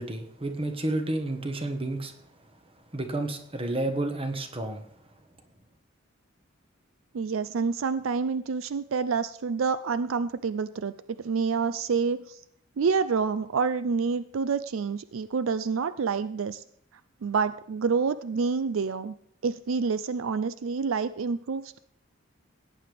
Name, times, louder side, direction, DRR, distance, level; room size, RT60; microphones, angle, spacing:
voice 1, 0.0-2.1 2.9-4.8, right 2 dB, 30° right, 5 dB, 1.3 m, -30 dB
voice 2, 7.1-12.4 12.8-16.6 17.2-19.1 19.4-21.8, right 5 dB, 75° right, 13 dB, 0.4 m, -28 dB
17.0 x 9.4 x 3.5 m, 0.67 s
head